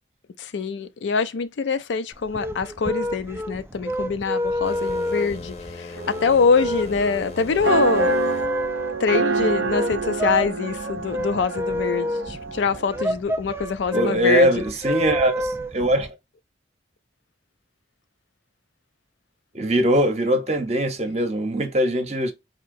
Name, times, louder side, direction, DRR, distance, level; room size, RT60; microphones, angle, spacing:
voice 1, 0.4-8.2 9.0-14.6, left 5 dB, 75° left, 0.4 m, -24 dB
sound 1, 2.1-16.1, left 1 dB, 15° right, 0.3 m, -29 dB
sound 2, 4.6-8.5, left 3 dB, 35° left, 0.7 m, -39 dB
sound 3, 6.0-13.0, right 4 dB, 75° right, 0.5 m, -28 dB
voice 2, 13.9-16.1 19.5-22.3, right 1 dB, 35° right, 0.7 m, -21 dB
4.2 x 2.7 x 2.5 m
head